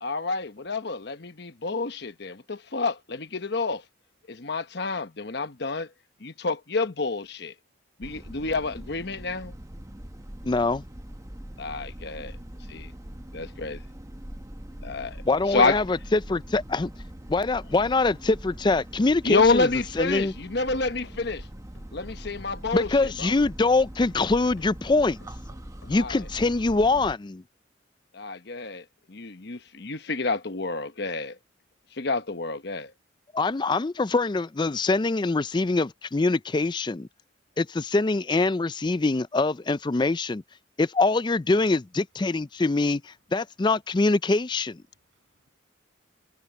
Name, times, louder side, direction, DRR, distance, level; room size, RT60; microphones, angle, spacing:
voice 1, 0.0-3.8 4.3-5.9 6.2-7.5 8.0-9.5 11.6-12.4 12.7-12.9 13.3-13.8 14.8-15.2 15.5-15.8 19.2-21.5 21.9-23.3 25.9-26.3 28.1-31.4 31.9-32.9, left 3 dB, 55° left, 1.1 m, -28 dB
sound 1, 8.0-27.2, right 1 dB, 15° right, 1.0 m, -42 dB
voice 2, 10.4-10.8 15.3-16.9 17.3-19.7 20.0-20.3 22.7-25.2 25.9-27.4 33.3-37.1 37.6-40.4 40.8-44.8, left 3 dB, 25° left, 0.4 m, -24 dB
Run, 20.7-27.4, left 1 dB, 80° left, 2.7 m, -53 dB
voice 3, 41.4-41.8 44.9-45.5, right 1 dB, 70° right, 7.9 m, -61 dB
head